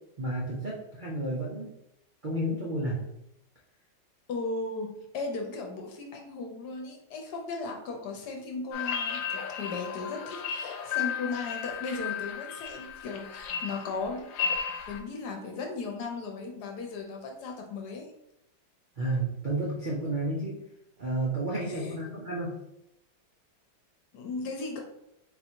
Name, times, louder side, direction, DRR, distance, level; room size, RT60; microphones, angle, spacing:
voice 1, 0.2-1.7 2.2-3.0 19.0-20.6 21.0-22.6, right 1 dB, 65° right, -4 dB, 0.4 m, -31 dB
voice 2, 4.3-14.3 14.9-18.1 21.7-22.0 24.1-24.8, left 3 dB, 65° left, 2 dB, 1.2 m, -36 dB
sound 1, 8.7-15.0, left 7 dB, 85° left, 1.3 m, -34 dB
3.9 x 2.6 x 4.4 m, 0.82 s
omnidirectional pair, 2.0 m